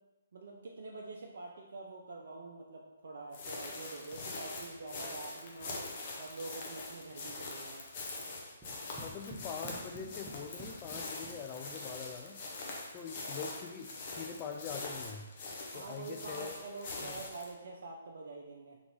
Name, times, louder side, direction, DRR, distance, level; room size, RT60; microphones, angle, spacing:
voice 1, 0.3-5.9 6.2-7.9 13.2-13.4 15.7-18.8, right 3 dB, 60° right, -1 dB, 0.5 m, -46 dB
sound 1, 3.3-17.5, left 3 dB, 40° left, 0.8 m, -43 dB
sound 2, 8.6-11.8, right 1 dB, 15° right, 0.7 m, -50 dB
voice 2, 8.9-12.4 12.9-15.3 15.7-16.6 17.0-17.2, left 6 dB, 25° left, 5 dB, 0.3 m, -44 dB
3.8 x 3.6 x 3.2 m, 1.1 s
figure-of-eight pair, 130°, 0 cm